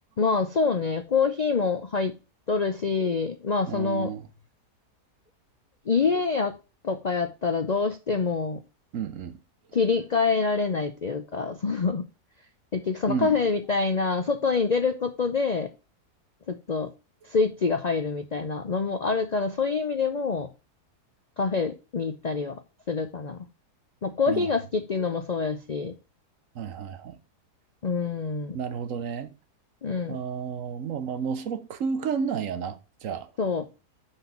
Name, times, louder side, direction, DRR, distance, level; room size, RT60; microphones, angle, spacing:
voice 1, 0.2-2.1 2.5-4.1 5.9-6.6 6.8-8.6 9.7-12.1 12.7-15.7 16.5-16.9 17.2-20.5 21.4-22.6 22.9-23.5 24.0-25.9 27.8-28.6 29.8-30.2 33.4-33.6, left 4 dB, 90° left, 0.3 m, -26 dB
voice 2, 3.7-4.3 8.9-9.4 13.1-13.4 24.3-24.5 26.5-27.2 28.5-29.3 30.1-33.3, right 6 dB, 60° right, 1.0 m, -31 dB
5.9 x 5.6 x 5.8 m
omnidirectional pair, 1.7 m